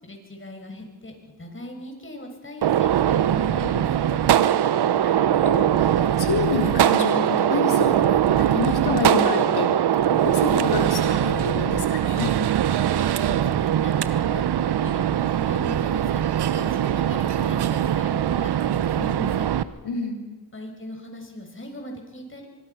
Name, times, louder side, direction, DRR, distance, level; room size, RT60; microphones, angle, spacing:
voice 1, 0.0-4.2 13.3-16.2 16.5-19.5 20.5-22.5, left 1 dB, 30° left, 3 dB, 6.7 m, -39 dB
Gunshot gunfire, 2.6-19.6, right 10 dB, 65° right, 1.0 m, -21 dB
voice 2, 5.0-12.4 19.8-20.2, left 4 dB, 65° left, 3 dB, 4.0 m, -28 dB
25.0 x 21.0 x 5.9 m, 1.3 s
cardioid pair, 60°, 43 cm